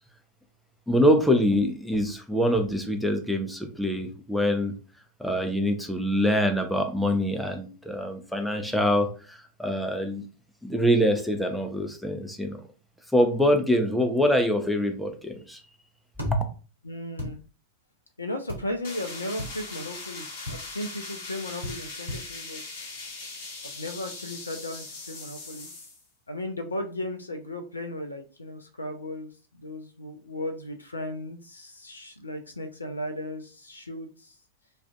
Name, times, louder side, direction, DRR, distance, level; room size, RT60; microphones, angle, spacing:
voice 1, 0.9-4.7 5.2-10.2 10.6-12.6 13.1-15.6 16.3-16.4, equal, ahead, 4 dB, 0.5 m, -24 dB
sound 1, 16.2-16.3 17.2-17.3 18.5-18.6 19.4-19.5 20.5-20.6 21.6-21.8 22.1-22.2, left 1 dB, 85° right, 0.9 m, -34 dB
voice 2, 16.8-17.4 18.2-22.6 23.6-25.7 26.3-34.3, left 1 dB, 80° left, 7 dB, 0.3 m, -36 dB
sound 2, 18.8-26.0, left 3 dB, 55° left, 0.9 m, -40 dB
2.4 x 2.4 x 2.2 m, 0.36 s
figure-of-eight pair, 90°, 0 cm